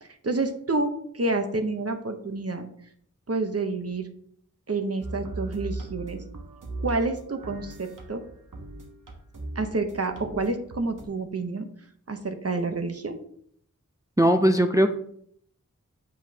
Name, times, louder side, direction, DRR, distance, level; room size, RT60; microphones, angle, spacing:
voice 1, 0.0-2.7 3.3-4.1 4.7-6.2 6.8-8.2 9.5-11.7 12.1-13.2, right 3 dB, 50° right, 6 dB, 0.9 m, -29 dB
sound 1, 5.0-11.1, right 2 dB, 75° right, 1.1 m, -38 dB
voice 2, 14.2-14.9, right 1 dB, 10° right, 5 dB, 0.5 m, -19 dB
7.9 x 5.3 x 2.8 m, 0.65 s
wide cardioid pair, 55°, 32 cm